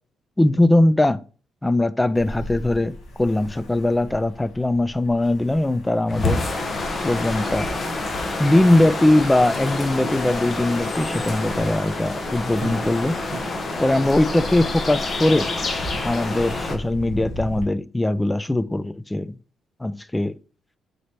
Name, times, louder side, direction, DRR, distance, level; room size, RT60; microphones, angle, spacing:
voice 1, 0.4-1.2 1.6-6.4 7.0-7.7 8.4-13.2 13.8-15.5 16.0-19.4 19.8-20.4, left 1 dB, 10° left, 0.3 m, -20 dB
Ocean, 2.1-17.6, left 1 dB, 75° left, 1.3 m, -39 dB
sound 1, 6.1-16.7, left 2 dB, 40° left, 0.8 m, -27 dB
sound 2, 9.5-14.7, right 5 dB, 60° right, 0.5 m, -41 dB
3.9 x 3.1 x 4.3 m
cardioid pair, 90°, 0 cm